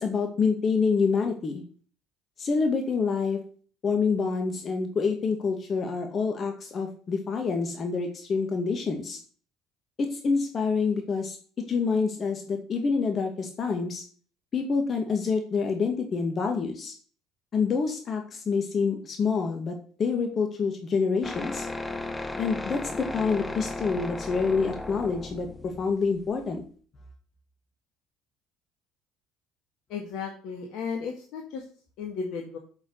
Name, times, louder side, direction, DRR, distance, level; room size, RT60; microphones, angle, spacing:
voice 1, 0.0-1.6 2.4-3.4 3.8-9.2 10.1-14.0 14.5-16.9 17.5-21.7 22.4-26.6, left 5 dB, 40° left, 4 dB, 2.2 m, -27 dB
sound 1, 21.2-26.6, left 2 dB, 15° left, 1.3 m, -35 dB
voice 2, 29.9-31.7 32.0-32.6, left 5 dB, 60° left, 2 dB, 2.0 m, -34 dB
7.5 x 7.1 x 8.2 m, 0.43 s
hypercardioid pair, 60°, 0 cm